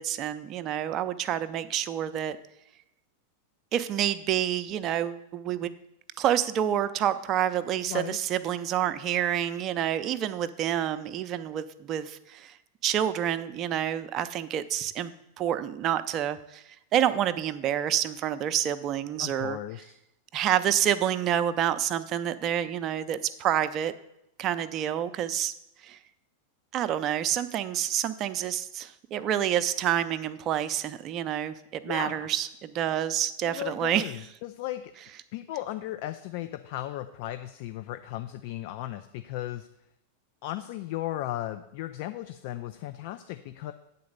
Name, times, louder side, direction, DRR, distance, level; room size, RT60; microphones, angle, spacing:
voice 1, 0.0-2.4 3.7-5.7 6.2-12.5 12.8-15.1 15.4-16.6 16.9-19.6 20.3-23.9 24.4-25.5 25.8-26.0 26.7-34.2, right 10 dB, 40° right, 11 dB, 0.5 m, -28 dB
voice 2, 7.9-8.2 19.2-19.8 31.9-32.3 33.5-34.9 35.3-39.7 40.4-43.7, left 14 dB, 60° left, 10 dB, 0.4 m, -36 dB
8.5 x 4.0 x 6.6 m, 0.84 s
hypercardioid pair, 105°, 0 cm